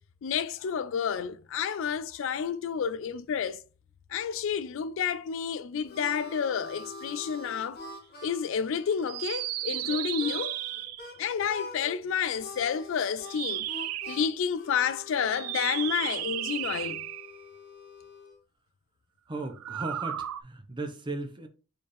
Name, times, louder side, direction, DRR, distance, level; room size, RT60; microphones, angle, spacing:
voice 1, 0.2-3.6 4.1-7.8 8.2-10.6 11.2-13.6 14.1-17.0, left 7 dB, 60° left, 0.3 m, -30 dB
Harmonica, 5.4-11.2 11.5-12.0 12.4-18.4, left 2 dB, 45° left, 1.0 m, -45 dB
sound 1, 9.0-11.2 13.2-14.3 15.3-17.4 19.5-20.4, right 13 dB, 80° right, 0.4 m, -34 dB
voice 2, 19.3-21.5, right 2 dB, 20° right, 0.7 m, -36 dB
4.4 x 3.4 x 3.1 m
head